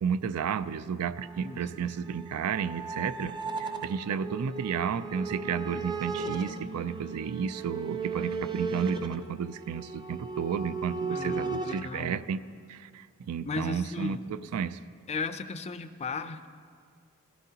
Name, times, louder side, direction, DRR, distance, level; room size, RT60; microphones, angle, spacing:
voice 1, 0.0-12.4 12.7-14.8, right 7 dB, 85° right, 14 dB, 0.4 m, -32 dB
sound 1, 1.2-11.8, right 4 dB, 20° right, 0.5 m, -36 dB
voice 2, 1.4-1.9 11.1-12.2 13.4-14.2 15.1-16.5, left 4 dB, 30° left, 11 dB, 0.4 m, -36 dB
17.5 x 13.5 x 2.8 m, 2.1 s
head